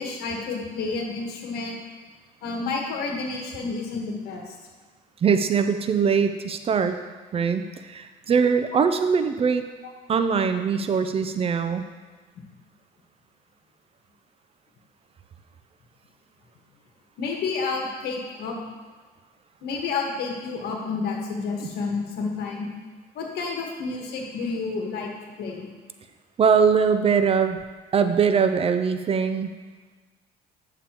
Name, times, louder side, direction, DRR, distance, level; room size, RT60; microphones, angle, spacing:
voice 1, 0.0-1.8 2.4-4.5 17.2-18.6 19.6-22.7 23.1-25.1 25.4-25.7, left 4 dB, 75° left, 1 dB, 1.4 m, -30 dB
voice 2, 5.2-7.0 7.3-9.6 10.1-11.8 26.4-27.6 27.9-29.5, right 6 dB, 35° right, 8 dB, 0.5 m, -22 dB
8.5 x 6.8 x 3.0 m, 1.4 s
cardioid pair, 110°, 17 cm